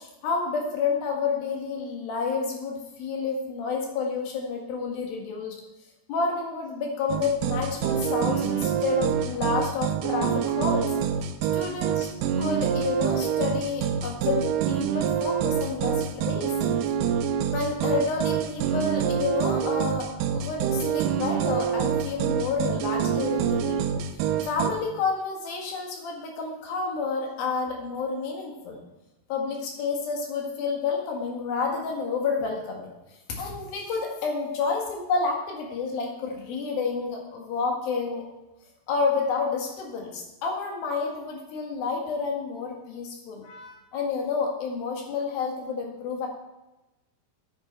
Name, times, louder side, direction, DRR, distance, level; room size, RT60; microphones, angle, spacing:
voice 1, 0.0-5.6 6.1-10.9 11.5-12.1 12.4-16.5 17.5-23.9 24.5-28.8 29.3-32.9 33.3-38.3 38.9-46.3, left 4 dB, 75° left, 1 dB, 3.5 m, -29 dB
sound 1, 7.1-24.7, right 8 dB, 80° right, 2.1 m, -26 dB
9.5 x 9.1 x 4.4 m, 1.0 s
omnidirectional pair, 4.3 m